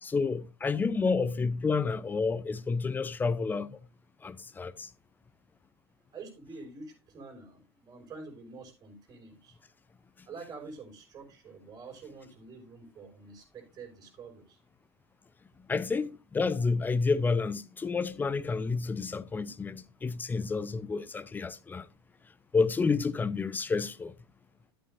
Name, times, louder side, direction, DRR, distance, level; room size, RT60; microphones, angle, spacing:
voice 1, 0.0-3.9 4.2-4.9 15.7-21.9 22.5-24.1, left 4 dB, 15° left, 0.7 m, -30 dB
voice 2, 6.1-9.6 10.3-14.6, right 4 dB, 25° right, 5.8 m, -47 dB
13.5 x 8.5 x 2.6 m
figure-of-eight pair, 85°, 14 cm